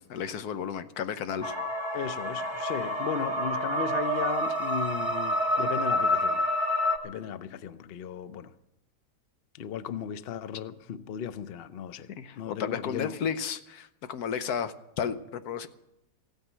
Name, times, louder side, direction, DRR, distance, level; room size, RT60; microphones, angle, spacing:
voice 1, 0.0-1.5 12.2-15.7, left 7 dB, 65° left, 1.3 m, -33 dB
sound 1, 1.4-7.0, left 1 dB, 20° left, 1.2 m, -28 dB
voice 2, 1.9-6.4 7.0-8.5 9.5-12.1 12.3-13.2, left 8 dB, 80° left, 0.5 m, -36 dB
15.5 x 9.2 x 8.2 m
omnidirectional pair, 1.9 m